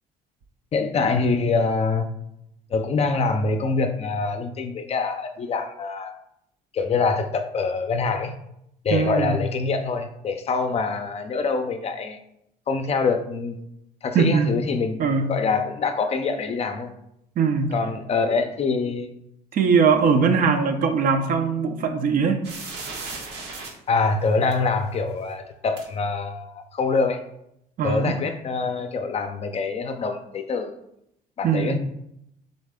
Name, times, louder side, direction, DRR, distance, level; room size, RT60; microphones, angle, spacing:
voice 1, 0.7-2.1 2.7-6.1 6.7-8.3 8.8-12.2 12.7-13.6 14.0-16.9 17.7-19.1 23.9-27.2 27.8-30.8 31.4-31.8, left 4 dB, 40° left, 7 dB, 0.5 m, -25 dB
voice 2, 8.9-9.4 14.1-14.6 15.0-15.4 17.4-17.7 19.5-22.4 27.8-28.2 31.4-31.8, right 5 dB, 55° right, 6 dB, 0.6 m, -21 dB
sound 1, 22.4-23.7 24.5-24.6 25.8-25.9, right 3 dB, 80° right, 1.2 m, -35 dB
4.0 x 3.2 x 3.6 m, 0.78 s
cardioid pair, 110°, 17 cm